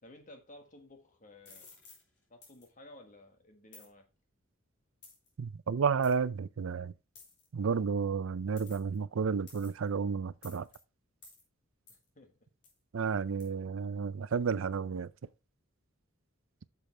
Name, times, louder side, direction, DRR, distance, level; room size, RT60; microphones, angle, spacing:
voice 1, 0.0-1.7 2.3-4.1 11.9-12.3 13.4-13.6, left 1 dB, 40° left, 1.6 m, -55 dB
sound 1, 1.5-2.0 2.4-2.7 3.7-3.9 5.0-5.3 6.0-6.2 7.2-7.5 8.6-9.0 9.5-9.9 10.4-10.8 11.2-11.4 11.9-12.0 12.6-12.8 13.4-13.5, left 4 dB, 60° left, 3.5 m, -54 dB
voice 2, 5.4-6.9 7.5-10.7 12.9-15.1, right 6 dB, 75° right, 0.5 m, -31 dB
8.9 x 6.8 x 3.3 m
head